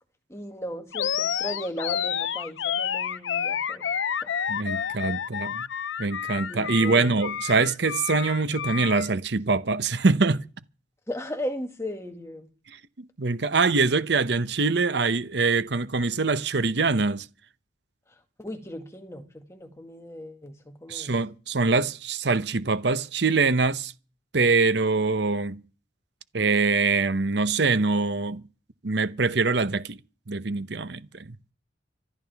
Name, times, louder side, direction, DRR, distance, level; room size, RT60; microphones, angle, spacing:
voice 1, 0.3-3.9 4.2-4.3 6.5-7.1 11.1-12.5 18.4-21.1, equal, 15° left, 2.0 m, -36 dB
Animal, 0.9-9.1, left 8 dB, 80° left, 0.6 m, -30 dB
voice 2, 4.5-5.6 6.0-10.4 13.0-17.3 20.9-23.9 24.3-25.6 26.3-28.4 28.8-30.0 30.3-31.5, right 4 dB, 65° right, 0.8 m, -24 dB
25.5 x 11.5 x 3.5 m
head